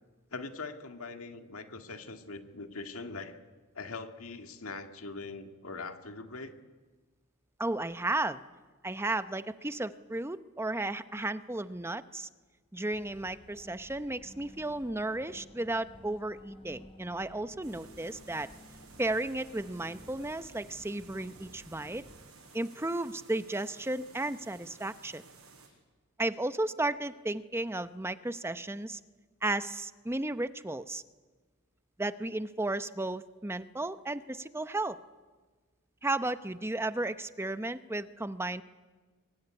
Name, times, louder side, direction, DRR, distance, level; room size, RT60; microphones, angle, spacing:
voice 1, 0.3-3.5 3.7-6.5, left 3 dB, 75° left, 6 dB, 2.0 m, -42 dB
voice 2, 7.6-8.4 8.8-12.3 12.7-18.5 19.0-22.0 22.5-25.2 26.2-29.0 29.4-31.0 32.0-35.0 36.0-38.6, right 2 dB, 10° right, 12 dB, 0.7 m, -34 dB
sound 1, 12.9-22.2, left 1 dB, 25° left, 5.7 m, -54 dB
sound 2, 17.6-25.7, right 4 dB, 80° right, 6.6 m, -55 dB
23.5 x 21.5 x 9.9 m, 1.3 s
head